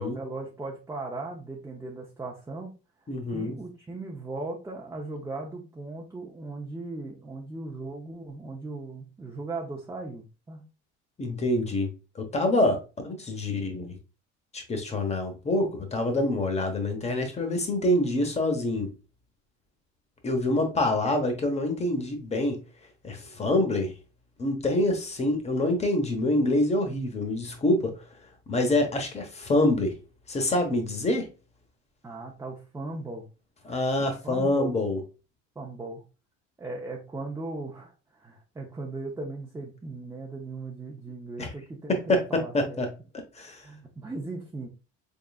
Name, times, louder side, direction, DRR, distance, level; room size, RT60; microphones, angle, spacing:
voice 1, 0.0-2.7 3.3-10.6 32.0-33.3 34.0-34.8 35.6-36.0 36.6-42.8 43.6-44.7, right 2 dB, 10° right, 0.6 m, -38 dB
voice 2, 3.1-3.6 11.2-11.9 12.1-14.0 14.5-18.9 20.2-22.6 23.0-23.9 24.4-27.9 28.5-29.9 30.3-31.3 33.6-35.0 41.4-41.5 41.9-42.9 43.4-43.6, left 1 dB, 20° left, 1.0 m, -26 dB
3.8 x 3.7 x 2.3 m
cardioid pair, 120°, 30 cm